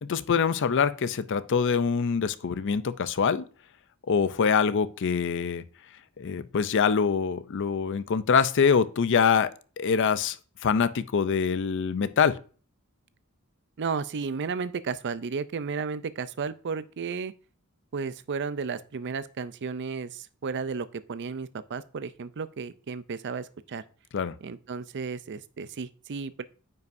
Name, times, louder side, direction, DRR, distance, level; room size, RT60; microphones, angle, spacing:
voice 1, 0.0-3.4 4.1-5.6 6.2-9.5 9.8-10.4 10.6-12.4 24.1-24.3, left 6 dB, 55° left, 0.5 m, -24 dB
voice 2, 13.8-17.3 17.9-23.8 24.4-26.4, right 5 dB, 55° right, 0.5 m, -33 dB
9.2 x 5.6 x 2.6 m
head